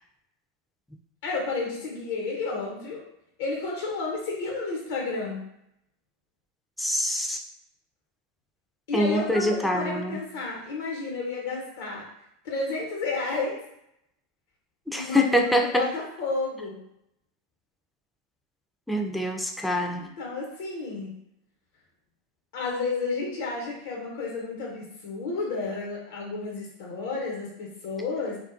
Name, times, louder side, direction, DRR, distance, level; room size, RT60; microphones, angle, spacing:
voice 1, 1.2-3.0 3.4-5.4 8.9-12.0 12.4-13.6 14.9-16.8 19.9-21.1 22.5-28.4, left 3 dB, 70° left, -2 dB, 1.0 m, -31 dB
voice 2, 6.8-7.4 8.9-10.2 14.9-15.9 18.9-20.0, left 1 dB, 5° left, 2 dB, 0.4 m, -25 dB
2.4 x 2.3 x 2.5 m, 0.78 s
hypercardioid pair, 95°, 0 cm